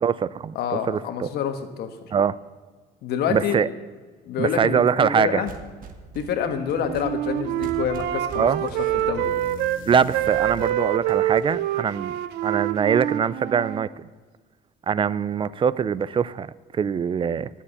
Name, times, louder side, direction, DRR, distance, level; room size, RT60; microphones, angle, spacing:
voice 1, 0.0-0.6 0.9-1.3 2.1-2.4 3.3-3.7 4.4-5.4 8.4-8.6 9.9-12.2 12.4-14.1 14.9-17.5, right 7 dB, 30° right, 19 dB, 0.4 m, -23 dB
voice 2, 0.5-1.9 3.0-3.6 4.3-5.5 6.1-8.7 8.9-9.3, left 8 dB, 75° left, 7 dB, 1.3 m, -27 dB
sound 1, 5.3-12.7, right 5 dB, 55° right, 1.3 m, -45 dB
Wind instrument woodwind instrument, 6.7-9.8 10.1-13.9, right 13 dB, 80° right, 0.5 m, -26 dB
sound 2, 8.7-10.8, left 10 dB, 55° left, 0.6 m, -41 dB
11.0 x 7.2 x 8.3 m, 1.4 s
cardioid pair, 110°, 17 cm